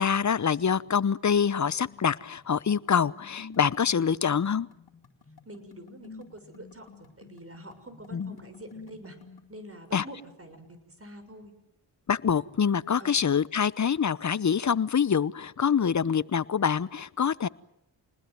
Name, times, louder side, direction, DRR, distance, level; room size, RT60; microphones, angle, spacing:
voice 1, 0.0-4.7 8.1-8.3 9.9-10.0 12.1-17.5, left 7 dB, 40° left, 19 dB, 0.9 m, -25 dB
sound 1, 1.5-9.5, left 5 dB, 55° left, 4.0 m, -51 dB
voice 2, 5.4-9.2 9.5-11.5 13.0-13.2, right 1 dB, 30° right, 9 dB, 6.7 m, -46 dB
29.0 x 20.5 x 9.4 m, 0.81 s
cardioid pair, 60°, 46 cm